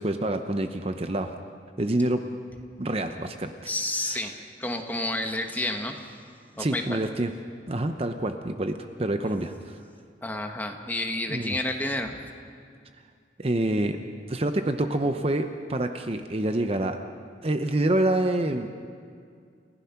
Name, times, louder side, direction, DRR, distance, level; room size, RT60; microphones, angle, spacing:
voice 1, 0.0-1.3 1.8-2.3 2.8-3.5 4.0-4.2 6.6-7.3 7.7-9.8 11.3-11.6 13.4-14.0 14.3-17.0 17.4-18.7, right 1 dB, 30° right, 7 dB, 0.7 m, -27 dB
voice 2, 3.7-4.3 4.6-6.0 6.6-7.0 10.2-12.2, left 1 dB, 10° left, 4 dB, 1.3 m, -30 dB
29.5 x 15.5 x 5.8 m, 2.3 s
head